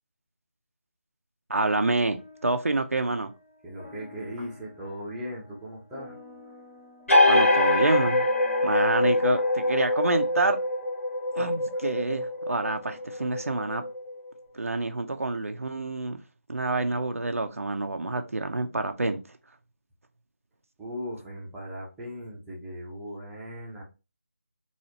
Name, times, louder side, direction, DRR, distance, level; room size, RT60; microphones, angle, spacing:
voice 1, 1.5-3.3 7.3-8.3 8.6-10.6 11.3-13.8 14.5-16.2 16.5-19.2, right 2 dB, 85° right, 0.5 m, -27 dB
sound 1, 1.6-10.3, left 3 dB, 20° left, 1.6 m, -50 dB
voice 2, 3.6-6.1 11.7-11.9 20.8-23.8, equal, 5° right, 0.6 m, -38 dB
sound 2, 7.1-14.3, left 2 dB, 70° left, 1.7 m, -24 dB
4.1 x 2.4 x 2.8 m
figure-of-eight pair, 165°, 8 cm